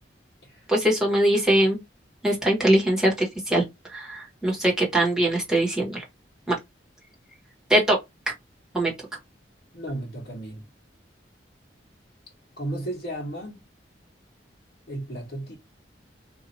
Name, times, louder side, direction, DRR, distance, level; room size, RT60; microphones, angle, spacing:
voice 1, 0.7-1.8 2.2-3.6 3.9-6.0 6.5-6.6 7.7-8.0 8.7-8.9, right 1 dB, 5° right, 1.4 m, -22 dB
voice 2, 9.7-10.6 12.6-13.6 14.9-15.6, right 1 dB, 60° left, 1.2 m, -34 dB
2.8 x 2.6 x 4.1 m
head